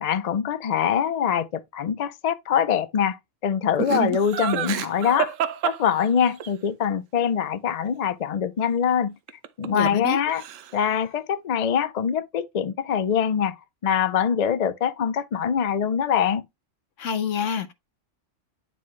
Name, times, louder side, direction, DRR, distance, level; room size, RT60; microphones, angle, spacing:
voice 1, 0.0-3.2 3.4-5.3 5.6-9.1 9.6-10.4 10.7-13.6 13.8-16.5, left 8 dB, 50° left, 0.5 m, -24 dB
Laughter, 3.8-6.5 9.3-10.1 10.3-10.9, right 10 dB, 85° right, 1.1 m, -28 dB
voice 2, 9.7-10.2 17.0-17.7, left 7 dB, 75° left, 1.2 m, -27 dB
9.5 x 4.1 x 3.1 m
omnidirectional pair, 1.3 m